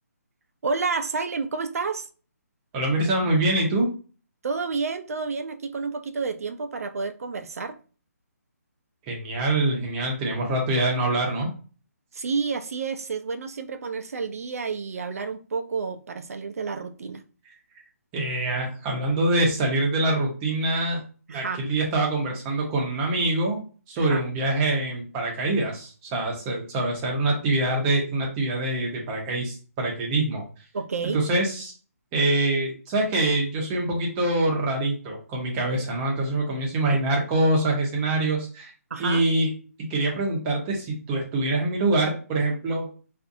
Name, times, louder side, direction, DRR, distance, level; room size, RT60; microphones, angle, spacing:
voice 1, 0.6-2.1 4.4-7.8 12.1-17.2 21.3-21.8 24.0-24.2 30.7-31.3 36.9-37.0 38.9-39.2, right 4 dB, 65° right, 0.4 m, -30 dB
voice 2, 2.7-3.9 9.1-11.5 18.1-21.0 21.3-23.6 23.9-30.4 31.1-31.7 32.1-38.7 39.0-39.5 39.8-42.9, right 2 dB, 15° right, 0.7 m, -25 dB
2.5 x 2.5 x 2.5 m
hypercardioid pair, 160°, 9 cm